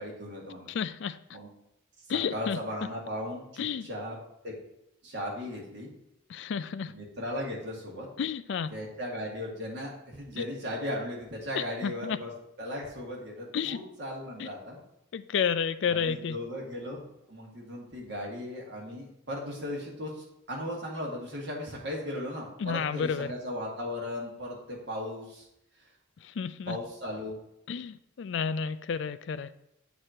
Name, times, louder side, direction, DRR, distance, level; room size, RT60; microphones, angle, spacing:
voice 1, 0.0-0.7 1.3-1.5 2.1-4.2 4.4-4.5 5.0-5.9 6.9-8.1 8.7-12.3 12.6-14.8 15.9-25.5 26.7-27.4, left 1 dB, 55° right, -2 dB, 1.9 m, -37 dB
voice 2, 0.7-1.2 2.1-2.6 3.6-3.9 6.3-6.9 8.2-8.7 10.4-10.5 11.6-12.2 13.5-13.8 14.4-14.5 15.1-16.4 22.6-23.3 26.2-26.8 27.7-29.5, left 6 dB, 60° left, 13 dB, 0.3 m, -31 dB
8.2 x 3.0 x 6.3 m, 0.80 s
head